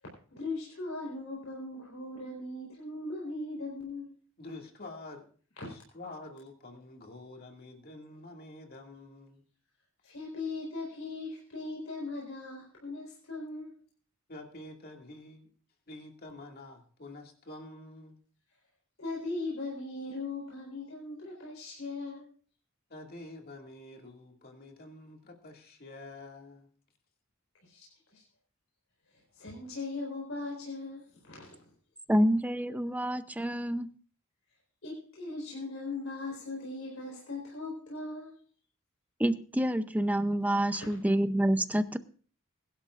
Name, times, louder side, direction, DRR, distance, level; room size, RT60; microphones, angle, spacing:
voice 1, 0.3-4.1 10.0-13.7 19.0-22.3 27.6-27.9 28.1-28.2 29.3-31.6 34.8-38.3 40.7-40.9, left 3 dB, 70° left, -3 dB, 4.2 m, -39 dB
voice 2, 4.4-5.3 5.6-9.4 14.3-15.5 15.9-18.2 22.9-26.7, left 2 dB, 45° left, 2 dB, 2.3 m, -47 dB
voice 3, 32.1-33.9 39.2-42.0, right 1 dB, 5° right, 11 dB, 0.6 m, -27 dB
21.5 x 11.5 x 2.5 m, 0.42 s
head